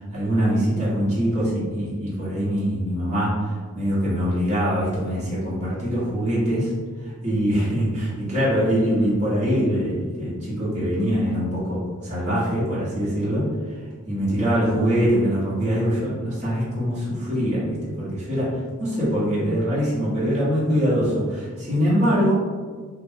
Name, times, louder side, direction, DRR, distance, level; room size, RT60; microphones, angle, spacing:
voice 1, 0.1-6.7 7.0-13.5 14.1-22.3, equal, 35° right, -9 dB, 1.0 m, -23 dB
2.6 x 2.5 x 3.4 m, 1.5 s
head